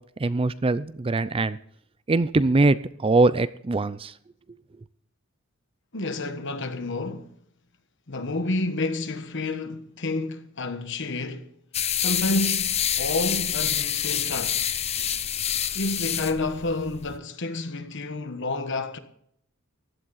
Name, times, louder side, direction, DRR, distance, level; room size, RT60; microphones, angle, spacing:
voice 1, 0.2-1.6 2.1-4.1, right 3 dB, 25° right, 0.4 m, -22 dB
voice 2, 5.9-7.3 8.1-11.5 11.9-14.6 15.7-19.0, left 2 dB, 60° left, 1.3 m, -29 dB
sound 1, 11.7-17.2, left 9 dB, 30° left, 0.6 m, -27 dB
16.0 x 11.5 x 4.0 m
head